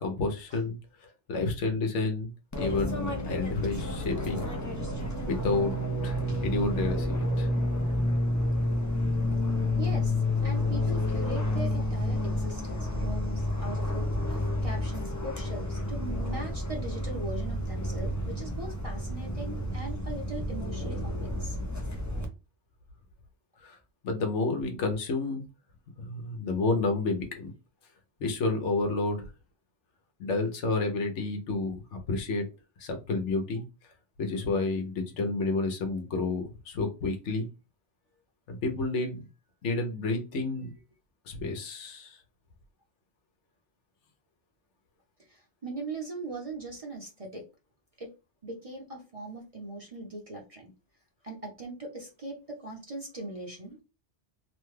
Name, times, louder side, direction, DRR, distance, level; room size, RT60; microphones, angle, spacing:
voice 1, 0.0-0.8 1.3-2.3 2.6-4.5 5.3-5.7 6.0-7.5 23.6-23.8 24.0-25.4 26.0-27.5 28.2-29.3 30.2-32.4 32.8-33.6 34.2-37.5 38.5-39.2 39.6-40.7 41.3-42.2, left 3 dB, 75° left, 4 dB, 1.1 m, -30 dB
Fixed-wing aircraft airplane, 2.5-22.2, left 1 dB, 25° left, 0.4 m, -30 dB
voice 2, 9.8-10.1 10.4-21.6 45.3-47.4 48.0-48.1 48.4-50.7 51.2-53.8, right 2 dB, 35° right, 0 dB, 0.7 m, -40 dB
3.1 x 2.2 x 3.1 m, 0.30 s
omnidirectional pair, 1.2 m